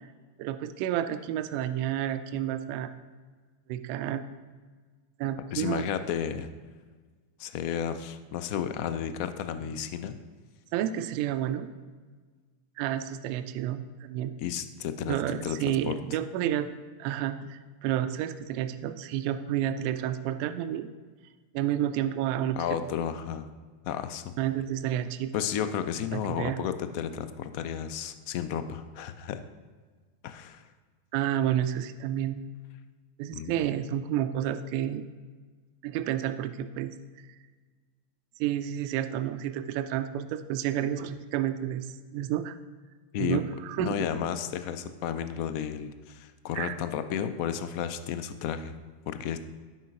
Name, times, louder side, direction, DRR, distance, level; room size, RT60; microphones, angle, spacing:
voice 1, 0.4-2.9 3.7-4.2 5.2-5.9 10.7-11.7 12.8-14.3 15.1-16.7 17.0-20.9 21.5-22.6 24.4-25.3 26.1-26.6 31.1-32.4 33.2-35.1 35.8-36.9 38.4-42.6 43.2-44.1 46.5-46.8, right 11 dB, 45° right, 10 dB, 0.3 m, -30 dB
voice 2, 5.5-6.5 7.4-10.2 14.4-15.6 15.8-15.9 22.6-23.5 23.8-24.3 25.3-29.4 30.2-30.6 33.3-33.7 43.1-43.4 43.8-48.7 49.1-49.4, left 9 dB, 45° left, 10 dB, 0.4 m, -32 dB
7.4 x 5.1 x 2.5 m, 1.5 s
figure-of-eight pair, 90°, 0 cm